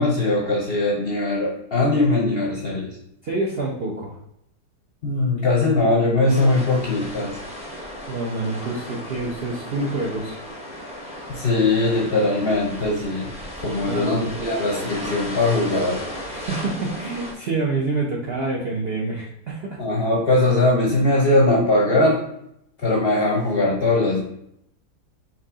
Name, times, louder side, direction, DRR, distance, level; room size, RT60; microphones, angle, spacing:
voice 1, 0.0-3.0 5.0-7.4 11.3-13.3 13.6-16.0 19.8-22.2 22.8-24.2, left 2 dB, 50° left, -3 dB, 0.7 m, -20 dB
voice 2, 3.2-4.2 8.1-10.4 13.8-14.5 16.3-19.8, right 3 dB, 55° right, -4 dB, 0.7 m, -27 dB
sound 1, 6.3-17.3, equal, 5° right, 0.6 m, -35 dB
4.7 x 3.1 x 3.5 m, 0.76 s
omnidirectional pair, 1.8 m